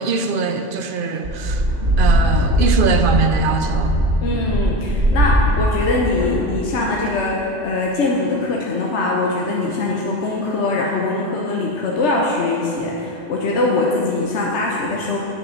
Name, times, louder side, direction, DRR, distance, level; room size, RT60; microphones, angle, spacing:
voice 1, 0.0-1.6 2.0-4.0, right 4 dB, 55° right, 6 dB, 0.7 m, -21 dB
sound 1, 1.2-6.7, equal, 80° right, 2.1 m, -19 dB
voice 2, 4.2-15.2, left 2 dB, 70° left, -2 dB, 1.1 m, -22 dB
7.9 x 6.0 x 6.4 m, 2.7 s
omnidirectional pair, 1.2 m